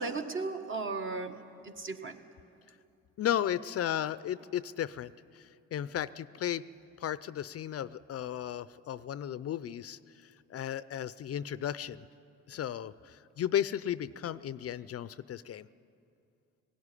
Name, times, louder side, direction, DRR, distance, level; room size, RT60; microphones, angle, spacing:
voice 1, 0.0-2.2, right 3 dB, 40° right, 5 dB, 1.5 m, -36 dB
voice 2, 3.2-6.6 7.0-12.0 12.5-15.7, left 10 dB, 50° left, 16 dB, 0.5 m, -35 dB
18.0 x 16.5 x 9.8 m, 2.5 s
cardioid pair, 90°, 30 cm